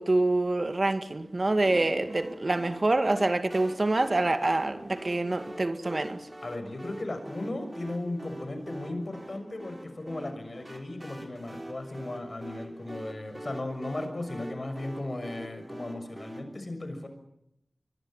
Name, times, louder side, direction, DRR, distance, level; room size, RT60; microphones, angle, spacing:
voice 1, 0.0-6.2, right 2 dB, 45° right, 2.2 m, -26 dB
sound 1, 1.6-16.4, right 1 dB, 15° right, 5.4 m, -44 dB
voice 2, 6.4-17.1, left 2 dB, 50° left, 6.4 m, -36 dB
23.5 x 22.5 x 9.2 m
wide cardioid pair, 60°, 0 cm